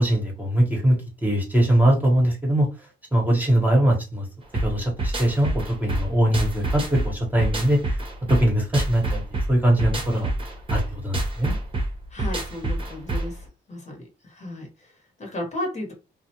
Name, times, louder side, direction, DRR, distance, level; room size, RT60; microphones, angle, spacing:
voice 1, 0.0-2.7 3.1-4.3 4.6-7.8 8.3-9.2 9.5-10.3 10.7-11.6, right 1 dB, 10° right, 1.0 m, -21 dB
sound 1, 4.5-13.4, right 2 dB, 25° right, 0.8 m, -27 dB
voice 2, 12.1-15.9, left 1 dB, 35° left, 1.1 m, -34 dB
2.4 x 2.1 x 2.8 m
cardioid pair, 90°, 20 cm